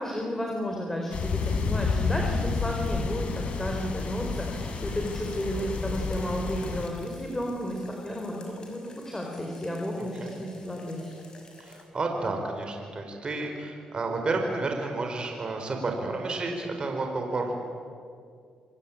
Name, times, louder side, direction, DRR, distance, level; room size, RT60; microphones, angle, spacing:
voice 1, 0.0-11.1, equal, 15° left, 1 dB, 4.5 m, -33 dB
sound 1, 1.1-6.9, left 4 dB, 60° left, 4.1 m, -30 dB
sound 2, 1.5-11.8, left 2 dB, 35° left, 5.7 m, -49 dB
voice 2, 10.0-10.3 11.6-17.6, right 3 dB, 40° right, 3 dB, 4.4 m, -31 dB
27.0 x 19.0 x 8.9 m, 2.2 s
cardioid pair, 80°, 2 cm